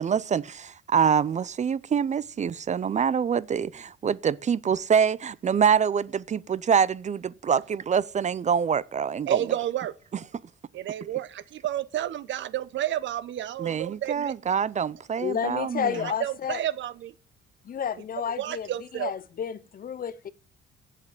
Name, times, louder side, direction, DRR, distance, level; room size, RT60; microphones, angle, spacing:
voice 1, 0.0-9.4 13.6-16.1, right 7 dB, 35° right, 0.5 m, -25 dB
voice 2, 9.3-9.9 10.7-14.3 15.9-17.1 18.4-19.1, right 12 dB, 70° right, 0.8 m, -31 dB
voice 3, 15.2-16.6 17.6-20.3, left 8 dB, 45° left, 0.7 m, -31 dB
7.7 x 7.5 x 7.6 m
cardioid pair, 90°, 20 cm